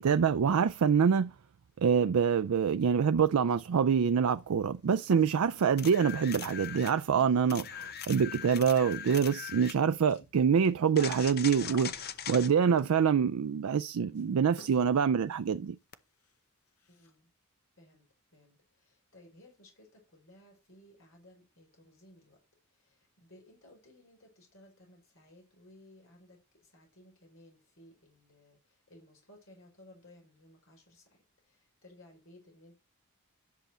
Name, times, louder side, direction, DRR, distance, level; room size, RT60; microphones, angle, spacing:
voice 1, 0.0-1.3 1.8-15.8, right 7 dB, 80° right, 0.4 m, -26 dB
sound 1, 3.5-4.0 4.3-13.2 14.1-14.3 14.6-15.1 15.3-15.4 15.8-15.9 16.2-16.4 16.7-17.2, left 2 dB, 80° left, 1.9 m, -53 dB
sound 2, 5.8-7.0 7.5-9.8 10.9-12.5 15.9-16.0, left 9 dB, 45° left, 0.7 m, -41 dB
voice 2, 16.9-17.3 17.8-18.1 18.3-22.4 22.7-32.8, left 1 dB, 60° left, 4.8 m, -59 dB
10.5 x 6.7 x 4.4 m
head